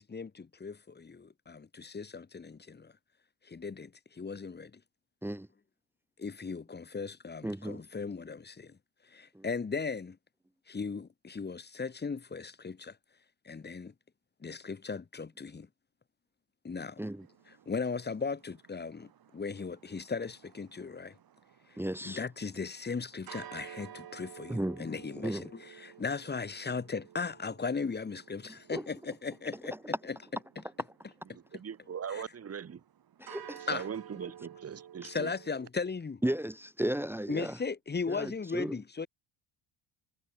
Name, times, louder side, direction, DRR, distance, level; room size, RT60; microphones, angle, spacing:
voice 1, 0.0-2.9 3.4-4.8 6.2-8.8 9.1-10.2 10.7-13.0 13.4-13.9 14.4-15.7 16.6-17.0 17.7-21.2 22.0-29.8 30.0-30.2 32.1-32.2 33.7-33.9 35.0-36.2 37.3-39.1, left 5 dB, 20° left, 2.1 m, -37 dB
voice 2, 7.4-7.8 9.3-9.5 17.0-17.3 21.8-22.2 24.5-24.9 25.2-25.5 28.7-28.9 33.2-33.7 35.0-35.1 36.2-37.6 38.1-38.8, right 1 dB, 5° right, 1.0 m, -34 dB
sound 1, 17.0-35.7, right 10 dB, 45° right, 6.1 m, -53 dB
voice 3, 31.3-32.8 33.7-35.3, right 7 dB, 30° right, 1.8 m, -40 dB
cardioid pair, 115°, 49 cm